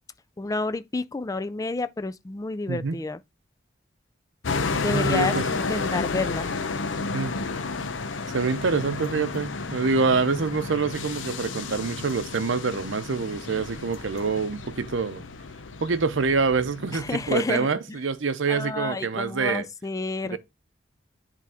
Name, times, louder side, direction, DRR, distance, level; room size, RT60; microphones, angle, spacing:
voice 1, 0.4-3.2 4.8-6.5 16.9-18.0 18.5-20.4, left 3 dB, 20° left, 0.4 m, -30 dB
voice 2, 2.7-3.0 4.9-5.5 7.1-7.3 8.3-15.2 15.8-19.7 20.2-20.4, right 4 dB, 85° right, 0.7 m, -26 dB
sound 1, 4.4-17.3, left 4 dB, 85° left, 0.8 m, -31 dB
10.5 x 3.5 x 3.5 m
head